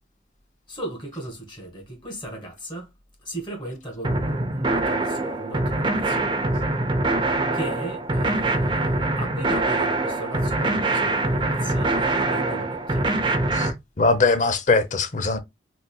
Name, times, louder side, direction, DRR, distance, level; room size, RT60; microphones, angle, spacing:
voice 1, 0.7-2.9 3.2-6.3 7.5-13.1, right 1 dB, 25° left, 1.9 m, -36 dB
sound 1, 4.0-13.7, right 2 dB, 25° right, 0.7 m, -24 dB
voice 2, 14.0-15.4, left 3 dB, 45° left, 0.7 m, -21 dB
4.1 x 3.9 x 2.3 m
head